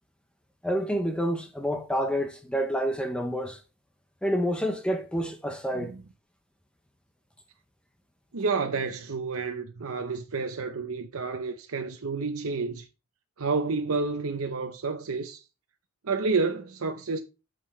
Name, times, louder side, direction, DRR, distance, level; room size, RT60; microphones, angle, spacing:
voice 1, 0.6-3.6 4.2-5.9, equal, 5° left, 0.7 m, -28 dB
voice 2, 8.3-12.9 13.4-15.4 16.0-17.2, right 4 dB, 70° right, 0.7 m, -30 dB
9.1 x 6.6 x 3.2 m
head